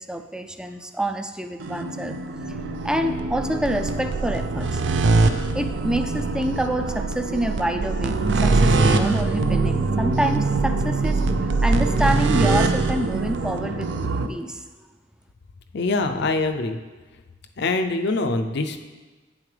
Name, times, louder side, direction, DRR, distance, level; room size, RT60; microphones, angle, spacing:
voice 1, 0.0-2.2 2.8-4.8 5.5-13.9 14.3-14.6, right 1 dB, 5° right, 7 dB, 0.4 m, -27 dB
sound 1, 1.6-14.3, right 3 dB, 65° right, 0.5 m, -23 dB
voice 2, 15.7-16.8 17.6-18.8, left 3 dB, 60° left, 7 dB, 0.5 m, -24 dB
8.8 x 7.1 x 3.3 m, 1.3 s
head